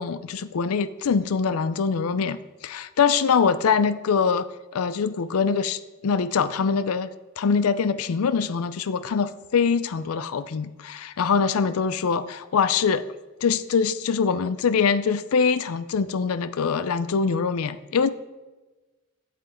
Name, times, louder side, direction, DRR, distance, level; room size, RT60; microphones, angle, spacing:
voice 1, 0.0-4.5 4.7-13.0 13.4-18.1, left 5 dB, 90° left, 14 dB, 0.5 m, -23 dB
8.6 x 7.6 x 4.3 m, 1.2 s
head